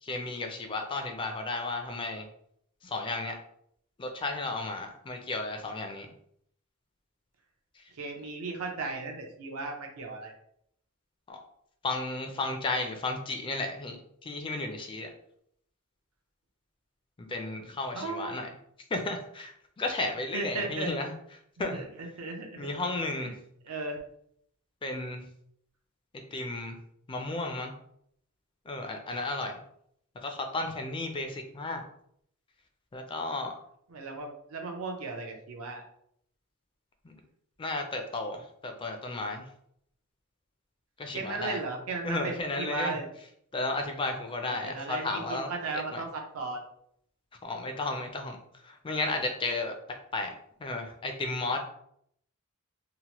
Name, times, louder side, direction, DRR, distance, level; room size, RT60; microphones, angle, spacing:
voice 1, 0.0-2.3 2.8-3.4 4.0-6.1 7.7-7.9 11.3-11.4 11.8-14.0 14.2-15.1 17.2-18.5 18.9-21.1 21.6-21.8 22.6-23.4 24.8-25.3 26.1-26.8 27.1-27.7 28.7-29.5 30.1-31.8 32.9-33.6 37.0-37.1 37.6-39.5 41.0-41.6 42.0-43.0 43.5-45.5 45.9-46.0 47.4-50.3 50.6-51.6, left 2 dB, 25° left, 4 dB, 0.4 m, -33 dB
voice 2, 7.9-10.3 17.9-18.3 20.3-20.9 21.6-22.7 23.2-23.3 23.6-24.0 33.9-35.8 41.1-43.1 44.4-46.6, right 3 dB, 75° right, 3 dB, 0.6 m, -36 dB
2.9 x 2.1 x 2.9 m, 0.70 s
head